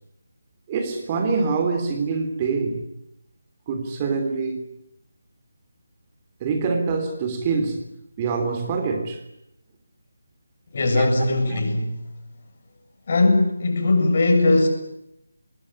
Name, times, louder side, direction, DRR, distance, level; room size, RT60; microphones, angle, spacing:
voice 1, 0.7-2.9 3.7-4.7 6.4-7.8 8.2-9.2 10.9-11.1 11.5-11.6, right 4 dB, 20° right, 6 dB, 3.3 m, -25 dB
voice 2, 10.7-12.0 13.1-14.7, left 2 dB, 40° left, 4 dB, 7.4 m, -19 dB
26.0 x 21.5 x 9.9 m, 0.84 s
figure-of-eight pair, 155°, 0 cm